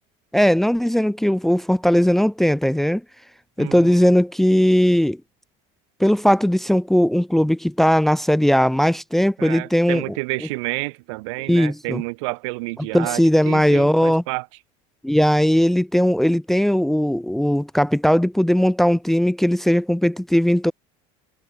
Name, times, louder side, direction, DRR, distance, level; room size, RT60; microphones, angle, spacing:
voice 1, 0.3-3.0 3.6-5.2 6.0-10.0 11.5-12.0 12.9-14.2 15.0-20.7, equal, ahead, 0.7 m, -18 dB
voice 2, 3.6-4.0 9.4-14.5, right 27 dB, 85° right, 2.8 m, -29 dB
cardioid pair, 160°, 15 cm